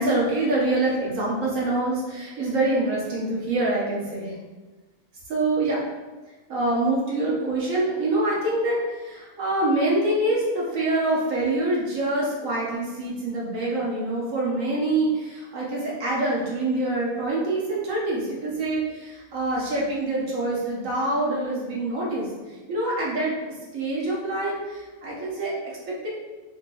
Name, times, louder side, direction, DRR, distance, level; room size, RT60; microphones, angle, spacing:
voice 1, 0.0-4.3 5.3-5.8 6.5-23.3 23.7-26.1, right 2 dB, 65° right, -5 dB, 1.3 m, -25 dB
4.3 x 2.9 x 2.3 m, 1.2 s
omnidirectional pair, 1.5 m